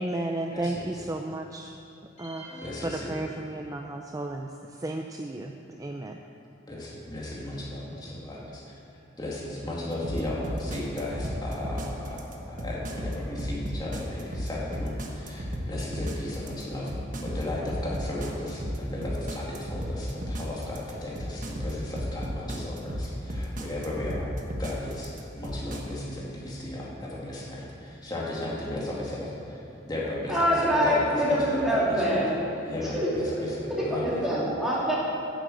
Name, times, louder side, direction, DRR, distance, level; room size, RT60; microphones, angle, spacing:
voice 1, 0.0-1.8 2.2-6.2, right 2 dB, 20° right, 3 dB, 0.4 m, -33 dB
voice 2, 0.5-0.8 2.6-3.1 6.7-8.6 9.2-29.6 29.9-32.2 32.7-34.2, left 1 dB, 20° left, -5 dB, 2.3 m, -35 dB
sound 1, 2.2-4.0, left 1 dB, 40° left, 3.3 m, -48 dB
sound 2, 10.0-25.8, equal, 45° right, 1.2 m, -33 dB
voice 3, 30.3-32.4 32.8-33.1 33.8-35.0, equal, ahead, -8 dB, 2.9 m, -25 dB
9.8 x 7.9 x 7.9 m, 2.7 s
head